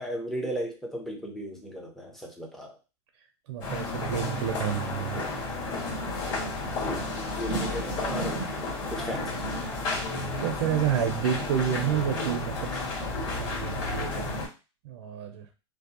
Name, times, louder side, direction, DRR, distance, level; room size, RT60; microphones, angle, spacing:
voice 1, 0.0-2.8 6.7-7.1 7.4-8.4 8.9-10.0, equal, ahead, 0 dB, 0.5 m, -36 dB
voice 2, 3.5-5.4 10.4-14.4 14.8-15.5, right 9 dB, 70° right, 5 dB, 0.5 m, -30 dB
sound 1, 3.6-14.5, left 2 dB, 45° left, 1.5 m, -32 dB
2.6 x 2.0 x 2.8 m, 0.31 s
supercardioid pair, 140°, 15 cm